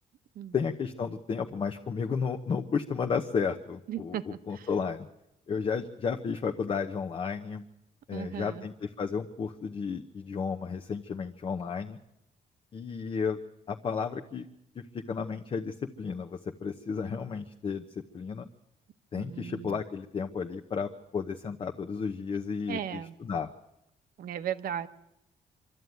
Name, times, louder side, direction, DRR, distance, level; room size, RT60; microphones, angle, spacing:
voice 1, 0.5-5.1 5.5-7.6 8.1-12.0 12.7-13.4 13.7-14.5 14.9-17.8 18.1-18.4 19.1-23.5, left 5 dB, 35° left, 3 dB, 0.9 m, -33 dB
voice 2, 3.9-4.7 8.1-8.6 19.2-19.8 22.7-23.2 24.2-24.9, right 9 dB, 75° right, 11 dB, 1.1 m, -36 dB
25.0 x 13.0 x 9.3 m, 0.84 s
wide cardioid pair, 175°, 15 cm